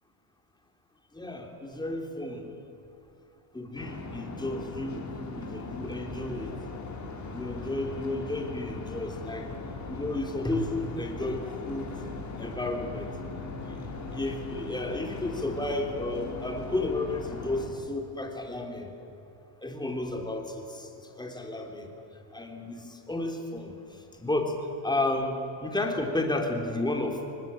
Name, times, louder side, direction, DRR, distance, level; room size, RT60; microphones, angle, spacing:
voice 1, 1.1-2.4 3.5-6.6 7.3-9.5 9.9-11.9 12.4-13.1 14.1-18.9 19.6-21.9 22.3-23.8 24.2-24.5 24.8-27.2, left 2 dB, 10° left, 3 dB, 3.5 m, -32 dB
sound 1, 3.7-17.7, left 3 dB, 35° left, 4.4 m, -39 dB
23.0 x 20.0 x 9.1 m, 2.9 s
cardioid pair, 105°, 48 cm